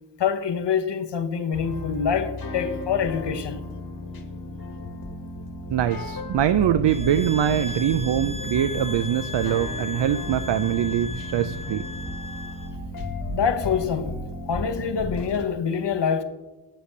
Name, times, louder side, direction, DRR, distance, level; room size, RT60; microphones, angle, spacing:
voice 1, 0.2-3.7 13.3-14.2 14.5-16.2, left 7 dB, 75° left, 0.9 m, -25 dB
sound 1, 1.5-15.5, left 2 dB, 55° left, 1.3 m, -35 dB
sound 2, 5.7-14.8, right 1 dB, 20° right, 1.1 m, -42 dB
voice 2, 5.7-11.8, right 10 dB, 75° right, 0.5 m, -23 dB
sound 3, 6.9-12.7, left 2 dB, 15° left, 0.6 m, -37 dB
8.3 x 7.7 x 6.6 m
wide cardioid pair, 125°, 42 cm